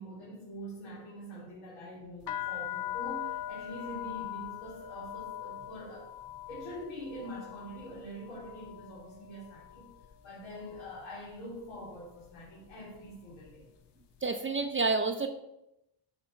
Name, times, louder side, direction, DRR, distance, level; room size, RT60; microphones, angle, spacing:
voice 1, 0.0-6.1 6.5-9.9 10.2-13.7, equal, 85° left, -6 dB, 2.1 m, -44 dB
sound 1, 2.2-10.1 10.4-11.1 11.7-12.0 12.2-13.7, left 12 dB, 55° left, 0.6 m, -41 dB
voice 2, 14.2-15.3, right 3 dB, 25° right, 6 dB, 0.5 m, -29 dB
7.9 x 2.9 x 5.6 m, 0.85 s
cardioid pair, 90°, 49 cm